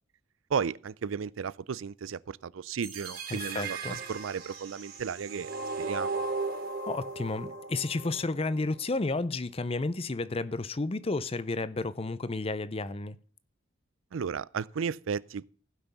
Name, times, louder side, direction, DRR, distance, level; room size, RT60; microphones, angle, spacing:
voice 1, 0.5-5.5 5.8-6.2 14.1-15.4, right 6 dB, 85° right, 0.4 m, -34 dB
sound 1, 2.8-8.8, right 3 dB, 50° right, 2.5 m, -37 dB
voice 2, 3.3-4.0 6.9-13.2, left 3 dB, 30° left, 0.6 m, -32 dB
15.5 x 6.0 x 6.8 m
head